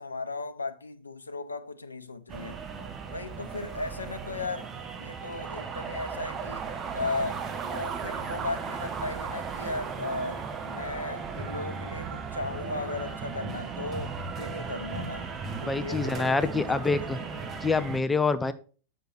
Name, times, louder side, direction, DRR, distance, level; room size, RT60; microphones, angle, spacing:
voice 1, 0.0-2.6 3.1-4.7 5.0-15.3 15.6-16.5, left 3 dB, 80° left, 0.6 m, -36 dB
sound 1, 2.3-18.0, right 5 dB, 25° right, 1.0 m, -36 dB
voice 2, 15.6-17.2 17.6-18.5, left 4 dB, 10° left, 0.5 m, -26 dB
6.9 x 6.1 x 4.4 m
figure-of-eight pair, 90°, 0 cm